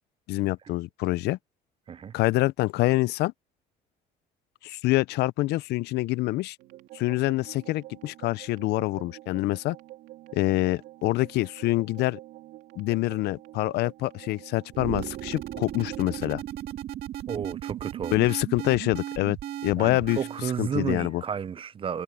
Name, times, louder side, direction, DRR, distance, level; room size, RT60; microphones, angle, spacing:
voice 1, 0.3-1.4 2.1-3.3 4.6-6.6 6.9-9.8 10.3-12.2 12.8-16.4 18.1-19.4 19.6-20.2 20.6-21.2, left 19 dB, 80° left, 0.5 m, -26 dB
sound 1, 6.6-16.4, right 16 dB, 85° right, 3.1 m, -48 dB
sound 2, 14.7-20.5, right 12 dB, 70° right, 2.0 m, -36 dB
voice 2, 17.3-18.4 19.8-22.0, right 7 dB, 30° right, 0.5 m, -32 dB
cardioid pair, 110°, 17 cm